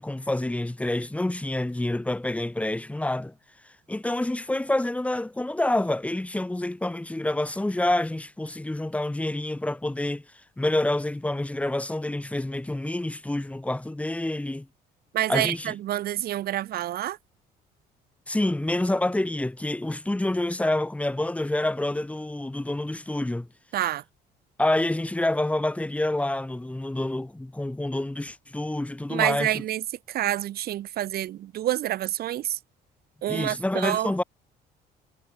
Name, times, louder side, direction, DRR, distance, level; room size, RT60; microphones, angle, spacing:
voice 1, 0.0-3.3 3.9-10.2 10.6-14.7 15.3-15.7 18.3-23.5 24.6-29.5 33.3-34.2, left 1 dB, 10° left, 2.8 m, -27 dB
voice 2, 15.1-17.2 23.7-24.0 29.1-32.6 33.2-34.1, right 13 dB, 65° right, 2.9 m, -28 dB
cardioid pair, 110°, 17 cm